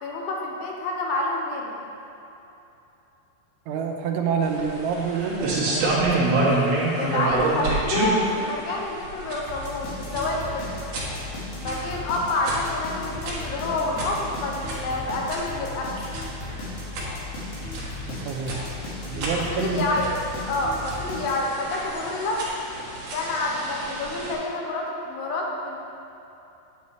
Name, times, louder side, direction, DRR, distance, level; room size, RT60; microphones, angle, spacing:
voice 1, 0.0-1.8 7.0-10.7 11.6-16.0 19.5-20.2 20.5-22.4 23.1-25.8, left 2 dB, 85° left, -1 dB, 3.3 m, -28 dB
voice 2, 3.7-6.3 18.1-18.6 19.1-19.9, right 5 dB, 85° right, 2 dB, 3.1 m, -27 dB
sound 1, 4.4-24.3, right 2 dB, 60° right, 2.9 m, -29 dB
sound 2, 9.5-21.7, left 2 dB, 60° left, 3.4 m, -36 dB
9.6 x 9.4 x 3.2 m, 3.0 s
omnidirectional pair, 5.4 m